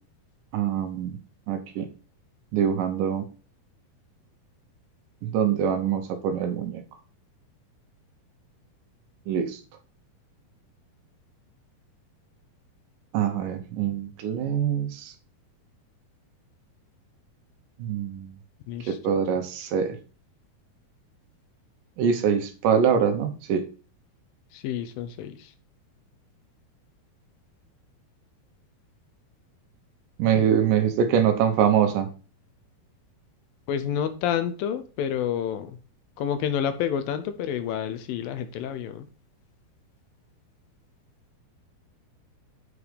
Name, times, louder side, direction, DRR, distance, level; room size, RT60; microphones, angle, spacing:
voice 1, 0.5-1.2 1.5-1.9 2.5-3.3 5.2-6.8 9.3-9.6 13.1-15.1 17.8-18.3 18.9-20.0 22.0-23.6 30.2-32.1, right 8 dB, 75° right, 7 dB, 2.1 m, -24 dB
voice 2, 18.7-19.2 24.5-25.5 30.4-31.0 33.7-35.8 36.2-39.1, left 9 dB, 75° left, 10 dB, 2.3 m, -29 dB
7.3 x 4.8 x 5.1 m, 0.36 s
omnidirectional pair, 4.4 m